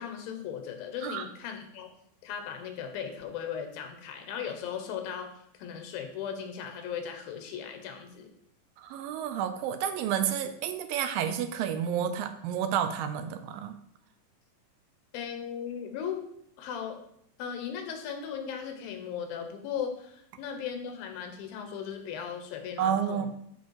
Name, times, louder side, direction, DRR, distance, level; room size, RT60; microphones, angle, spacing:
voice 1, 0.0-1.9 2.2-5.3 5.6-8.3 15.1-16.3 16.6-17.0 17.4-23.3, left 8 dB, 85° left, 6 dB, 2.7 m, -37 dB
voice 2, 8.8-13.7 22.8-23.3, right 9 dB, 85° right, 9 dB, 2.4 m, -30 dB
9.6 x 3.7 x 4.7 m, 0.71 s
omnidirectional pair, 4.1 m